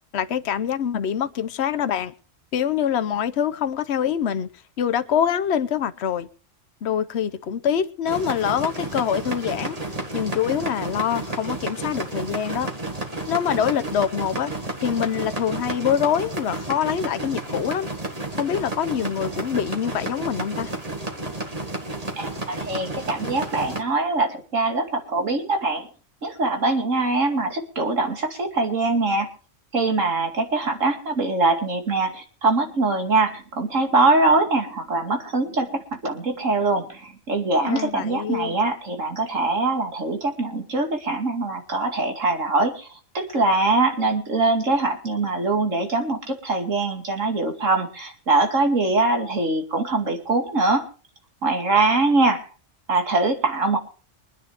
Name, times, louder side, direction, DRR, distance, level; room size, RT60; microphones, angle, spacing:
voice 1, 0.1-2.1 2.5-4.5 4.8-6.3 6.8-9.8 10.1-12.7 13.3-14.5 14.8-17.9 18.4-20.7 37.6-38.5, left 8 dB, 60° left, 1.1 m, -25 dB
sound 1, 8.1-23.8, right 2 dB, 30° right, 2.0 m, -31 dB
voice 2, 22.2-25.9 26.2-29.3 29.7-50.8 51.4-52.4 52.9-53.8, right 3 dB, 75° right, 2.7 m, -23 dB
24.0 x 9.7 x 3.4 m
omnidirectional pair, 1.3 m